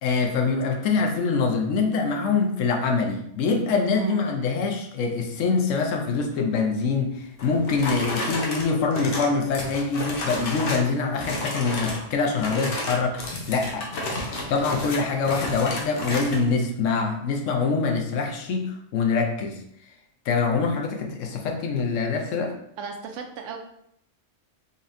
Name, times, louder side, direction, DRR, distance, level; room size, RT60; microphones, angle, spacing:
voice 1, 0.0-13.9 14.5-19.6 20.3-22.5, left 4 dB, 90° left, 3 dB, 1.0 m, -24 dB
sound 1, 7.4-10.9 11.2-12.0 12.3-16.4, left 2 dB, 55° left, 0.9 m, -31 dB
voice 2, 22.8-23.6, right 5 dB, 90° right, 4 dB, 1.0 m, -34 dB
4.0 x 3.1 x 2.6 m, 0.72 s
omnidirectional pair, 1.3 m